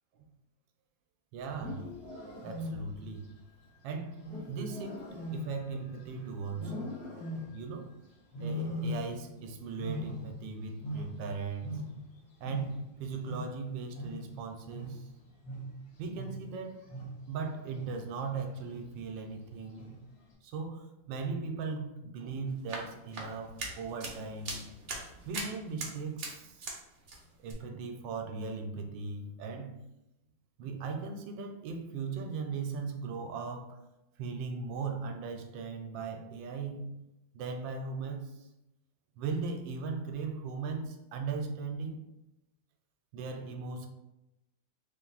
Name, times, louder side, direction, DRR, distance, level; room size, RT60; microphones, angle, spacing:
voice 1, 1.3-1.9 2.4-3.3 3.8-7.0 7.5-7.9 8.4-11.8 12.4-15.1 16.0-16.8 17.3-20.0 20.4-24.6 25.1-26.6 27.4-29.8 30.6-33.8 34.2-36.9 37.3-38.5 39.2-42.0 43.1-43.9, right 4 dB, 80° right, 4 dB, 1.3 m, -38 dB
Wild animals, 1.4-3.1 4.2-6.1 6.5-7.7 8.3-9.4 9.6-12.2 12.4-17.3 17.7-18.1 18.6-19.0 19.7-20.2, left 1 dB, 65° left, 1.6 m, -40 dB
sound 1, 22.5-26.8 27.1-27.5, right 3 dB, 55° right, 0.8 m, -41 dB
3.6 x 2.6 x 3.9 m, 0.92 s
omnidirectional pair, 2.0 m